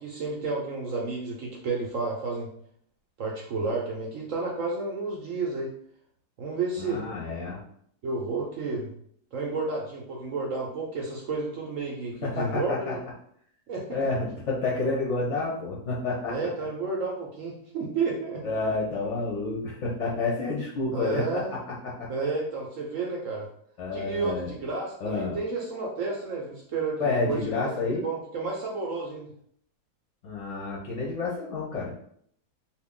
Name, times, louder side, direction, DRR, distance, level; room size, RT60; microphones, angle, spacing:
voice 1, 0.0-2.5 3.2-5.7 6.4-7.0 8.0-8.9 9.3-13.0 13.7-14.1 16.3-18.6 20.9-21.5 22.1-23.5 23.9-29.3, right 3 dB, 65° right, -2 dB, 0.8 m, -31 dB
voice 2, 6.8-7.6 12.2-12.9 13.9-16.3 18.4-21.4 21.8-22.1 23.8-24.5 25.0-25.4 27.0-28.1 30.2-31.9, left 3 dB, 60° left, -4 dB, 0.8 m, -29 dB
2.6 x 2.4 x 3.6 m, 0.65 s
omnidirectional pair, 1.7 m